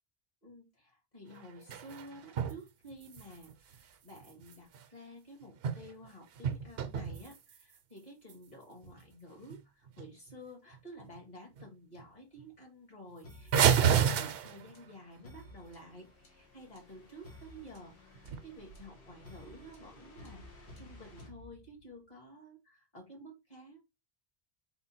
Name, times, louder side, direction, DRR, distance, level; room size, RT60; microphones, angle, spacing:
voice 1, 0.4-23.8, equal, 45° left, 0 dB, 1.7 m, -52 dB
sound 1, 1.3-2.6 2.9-4.8 5.4-6.1 6.3-7.8 8.3-8.4 8.8-9.0 9.4-9.6 9.9-10.3 10.7-11.2 11.6-11.7 12.0-12.1 12.4-12.5 13.5-14.9 18.1-18.8, right 8 dB, 75° right, 0.8 m, -31 dB
sound 2, 13.2-22.1, left 1 dB, 90° left, 1.5 m, -55 dB
3.7 x 2.2 x 4.1 m, 0.23 s
omnidirectional pair, 1.0 m